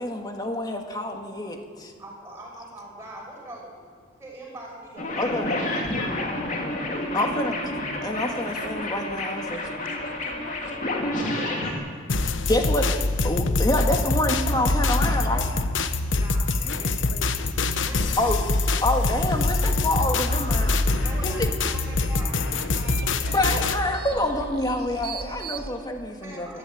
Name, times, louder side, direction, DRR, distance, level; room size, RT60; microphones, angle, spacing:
voice 1, 0.0-1.9 5.2-5.5 7.1-7.6 8.0-9.7 12.4-15.5 18.2-18.5 18.8-20.8 21.2-21.3 23.3-26.6, left 1 dB, 20° left, 3 dB, 1.9 m, -27 dB
voice 2, 2.0-3.9 4.2-7.6 11.0-12.0 16.1-16.9 17.8-18.4 21.0-23.4 26.2-26.6, right 1 dB, 15° right, -3 dB, 6.2 m, -43 dB
sound 1, 5.0-11.7, left 1 dB, 40° left, 3.0 m, -29 dB
voice 3, 9.5-10.8 16.6-17.5, left 2 dB, 70° left, 2 dB, 2.8 m, -43 dB
sound 2, 12.1-23.8, left 3 dB, 90° left, 1.0 m, -24 dB
sound 3, 20.3-25.7, right 2 dB, 55° right, 1.4 m, -37 dB
22.5 x 12.5 x 9.3 m, 2.2 s
head